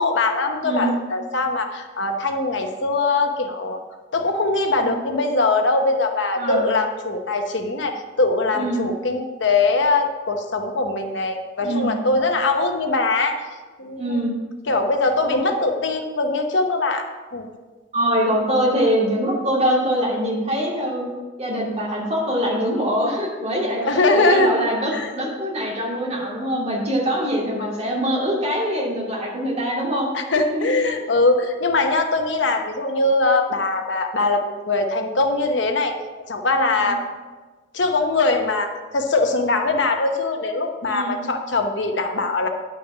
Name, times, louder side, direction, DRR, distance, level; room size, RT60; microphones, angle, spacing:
voice 1, 0.0-3.8 4.1-13.4 13.8-14.2 14.7-17.5 23.8-24.6 24.9-25.1 27.6-27.7 30.1-35.9 36.3-37.0 37.7-42.5, left 3 dB, 65° left, 5 dB, 0.9 m, -21 dB
voice 2, 8.5-8.9 11.6-12.0 14.0-14.3 15.2-15.4 17.9-30.1 30.4-30.7 36.8-37.0 40.8-41.2, equal, 35° right, -4 dB, 2.5 m, -23 dB
10.0 x 5.8 x 6.1 m, 1.3 s
head